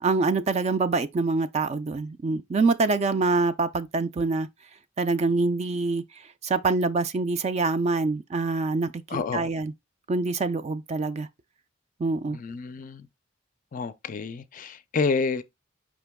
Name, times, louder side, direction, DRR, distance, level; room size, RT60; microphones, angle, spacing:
voice 1, 0.0-4.5 5.0-6.0 6.4-9.7 10.1-11.3 12.0-12.4, right 3 dB, 35° right, 0.3 m, -25 dB
voice 2, 9.1-9.5 12.3-13.1 13.7-15.4, left 4 dB, 40° left, 0.4 m, -29 dB
5.1 x 2.9 x 3.5 m
head